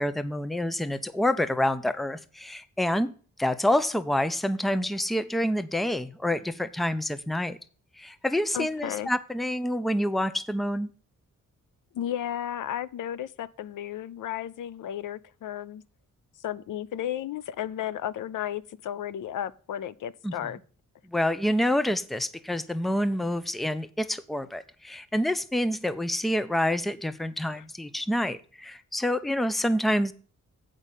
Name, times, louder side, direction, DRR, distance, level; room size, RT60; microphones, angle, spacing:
voice 1, 0.0-7.6 8.0-10.9 20.2-20.3 21.0-30.1, left 1 dB, ahead, 0.5 m, -27 dB
voice 2, 8.5-9.1 11.9-15.8 16.4-20.6 27.5-27.6, left 11 dB, 85° left, 0.5 m, -34 dB
8.2 x 5.2 x 7.2 m
wide cardioid pair, 135°, 31 cm